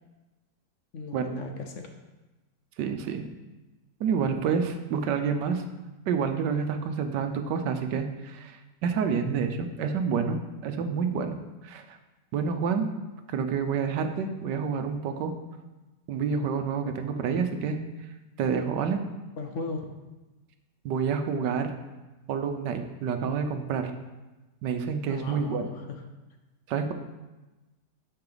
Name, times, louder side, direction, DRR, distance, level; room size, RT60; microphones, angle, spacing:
voice 1, 0.9-1.9 19.4-19.9 25.1-26.0, left 3 dB, 60° left, 4 dB, 0.9 m, -36 dB
voice 2, 2.8-3.2 4.0-5.6 6.1-11.4 11.6-12.0 12.3-12.9 13.3-15.3 16.1-17.8 18.4-19.0 20.8-21.7 22.3-23.9 24.6-25.7 26.7-26.9, right 6 dB, 90° right, 7 dB, 1.4 m, -28 dB
8.7 x 5.7 x 3.9 m, 1.1 s
omnidirectional pair, 1.8 m